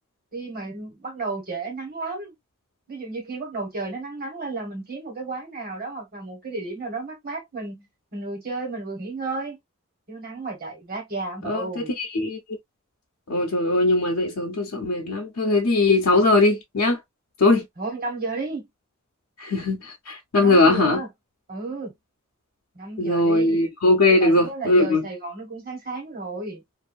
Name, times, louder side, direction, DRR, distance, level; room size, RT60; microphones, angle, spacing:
voice 1, 0.3-2.3 2.9-9.6 10.1-11.9 17.8-18.7 20.4-21.1 21.5-21.9 22.7-23.6 24.1-26.6, right 3 dB, 45° right, 1.3 m, -33 dB
voice 2, 11.4-12.4 13.3-17.0 17.4-17.6 19.4-21.0 23.0-25.0, left 2 dB, 85° left, 0.6 m, -20 dB
2.5 x 2.4 x 2.4 m
head